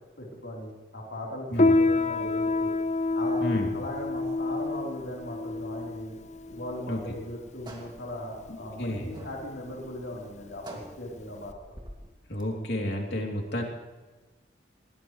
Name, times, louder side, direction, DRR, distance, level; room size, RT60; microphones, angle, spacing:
voice 1, 0.2-2.7 3.1-6.1 6.5-11.5, left 1 dB, 90° left, -3 dB, 4.0 m, -38 dB
Piano, 1.5-11.5, left 2 dB, 40° left, 0.6 m, -28 dB
sound 1, 7.2-12.8, right 1 dB, 25° right, 2.4 m, -48 dB
voice 2, 8.5-9.1 12.3-13.6, left 1 dB, 65° left, 1 dB, 3.3 m, -31 dB
20.5 x 19.0 x 3.3 m, 1.2 s
head